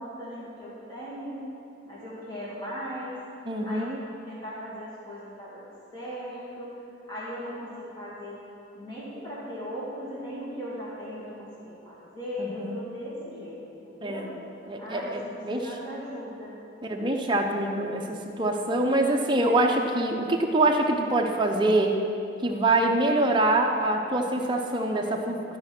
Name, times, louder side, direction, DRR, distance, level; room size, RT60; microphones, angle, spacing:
voice 1, 0.0-1.4 1.8-3.2 3.6-8.4 8.7-14.3 14.8-16.6, equal, 20° left, -8 dB, 2.2 m, -38 dB
voice 2, 3.5-4.0 12.4-12.8 14.0-14.2 14.7-15.7 16.8-22.0 22.4-25.4, right 2 dB, 25° right, 1 dB, 0.7 m, -25 dB
13.0 x 5.2 x 6.0 m, 2.7 s
head